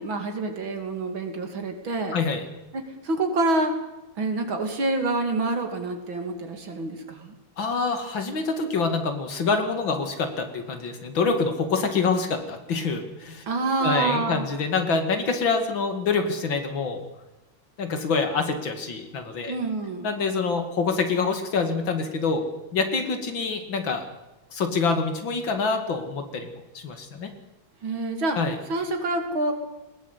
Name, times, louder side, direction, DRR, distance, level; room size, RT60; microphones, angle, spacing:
voice 1, 0.0-2.2 2.7-3.7 4.2-7.3 13.5-14.4 19.5-20.1 27.8-28.4 28.7-29.5, right 2 dB, 85° right, 5 dB, 3.4 m, -27 dB
voice 2, 2.1-2.4 7.6-13.4 13.8-17.0 17.8-19.6 20.0-22.4 22.7-24.0 24.5-26.5 26.7-27.3 28.4-28.6, left 4 dB, 75° left, 6 dB, 3.0 m, -26 dB
20.0 x 17.5 x 8.3 m, 1.0 s
omnidirectional pair, 2.1 m